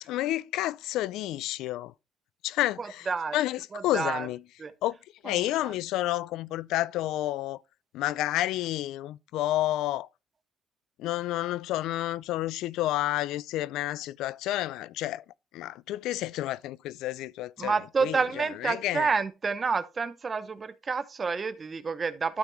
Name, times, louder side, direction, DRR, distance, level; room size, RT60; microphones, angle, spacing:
voice 1, 0.0-1.9 2.4-3.1 3.3-4.4 4.8-5.0 5.2-7.6 7.9-10.1 11.0-15.2 15.5-17.7 18.0-19.1, left 15 dB, 85° left, 0.4 m, -30 dB
voice 2, 2.8-3.4 3.7-4.3 4.6-4.7 5.2-5.7 17.6-22.4, right 5 dB, 30° right, 0.8 m, -29 dB
12.5 x 5.9 x 3.1 m
cardioid pair, 110°, 0 cm